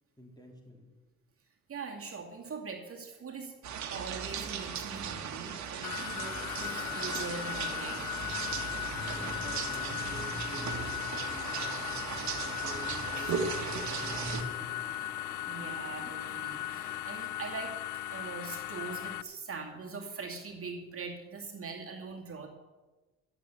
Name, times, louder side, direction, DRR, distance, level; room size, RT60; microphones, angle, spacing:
voice 1, 0.2-0.9 9.1-14.7, right 1 dB, 15° left, 0 dB, 3.4 m, -49 dB
voice 2, 1.7-3.5 3.9-8.1 15.5-17.7 18.1-22.5, right 4 dB, 45° right, 1 dB, 2.3 m, -42 dB
sound 1, 3.6-14.4, right 6 dB, 65° right, 1.6 m, -37 dB
sound 2, 5.8-19.2, left 13 dB, 85° left, 0.5 m, -37 dB
sound 3, 6.6-17.0, right 1 dB, 15° right, 2.0 m, -51 dB
12.5 x 7.8 x 8.0 m, 1.2 s
cardioid pair, 90°, 30 cm